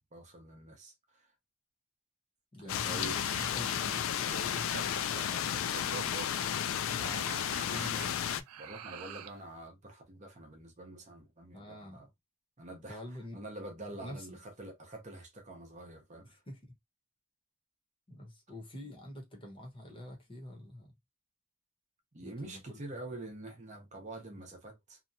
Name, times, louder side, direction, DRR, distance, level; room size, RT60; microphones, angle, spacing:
voice 1, 0.1-1.3 2.6-3.6 6.9-8.2 8.6-12.1 12.6-13.0 13.3-16.4 22.1-25.0, right 2 dB, 35° right, 0.7 m, -46 dB
voice 2, 2.5-7.2 7.5-8.4 11.5-12.1 12.9-13.4 14.0-14.4 16.3-16.8 18.1-20.9 22.2-22.8, left 1 dB, 25° left, 0.9 m, -47 dB
sound 1, 2.7-8.4, left 9 dB, 65° left, 0.3 m, -33 dB
sound 2, 2.9-9.4, right 9 dB, 90° right, 0.4 m, -48 dB
2.8 x 2.1 x 2.6 m
head